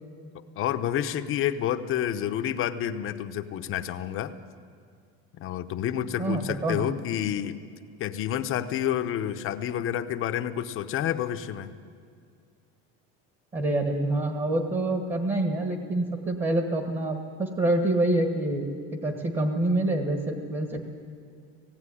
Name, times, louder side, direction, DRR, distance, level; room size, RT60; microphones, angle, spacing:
voice 1, 0.3-4.3 5.4-7.6 8.0-11.7, left 10 dB, 40° left, 9 dB, 0.9 m, -29 dB
voice 2, 6.2-6.8 13.5-18.7 19.0-20.8, right 1 dB, 25° right, 4 dB, 1.6 m, -26 dB
18.0 x 16.0 x 9.9 m, 2.2 s
cardioid pair, 150°, 31 cm